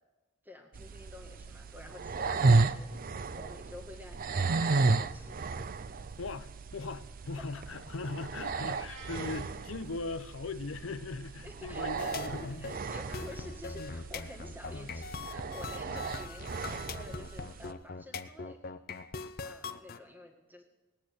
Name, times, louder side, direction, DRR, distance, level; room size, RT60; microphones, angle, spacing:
voice 1, 0.4-2.9 3.3-5.4 11.4-18.7 19.4-20.6, left 2 dB, 10° right, 1.8 m, -50 dB
sound 1, 0.7-17.7, right 3 dB, 45° right, 0.5 m, -33 dB
voice 2, 6.2-12.7 13.8-13.9 14.7-14.9 15.9-16.0, left 3 dB, 90° left, 0.7 m, -39 dB
Meow, 8.6-9.5, right 2 dB, 70° right, 2.8 m, -48 dB
sound 2, 12.0-20.0, left 4 dB, 50° left, 0.6 m, -42 dB
19.0 x 8.7 x 6.6 m
head